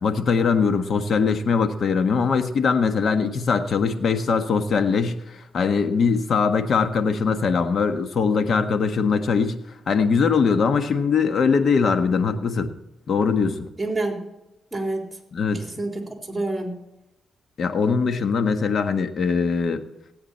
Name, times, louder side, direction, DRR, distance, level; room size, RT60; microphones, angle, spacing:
voice 1, 0.0-9.6 9.9-12.7 13.1-13.7 15.3-15.6 17.6-19.8, left 5 dB, 60° left, 7 dB, 1.4 m, -21 dB
voice 2, 13.8-14.2 14.7-15.0 15.5-16.8, right 2 dB, 15° right, 1 dB, 3.7 m, -28 dB
17.5 x 8.8 x 4.3 m, 0.90 s
cardioid pair, 70°, 0 cm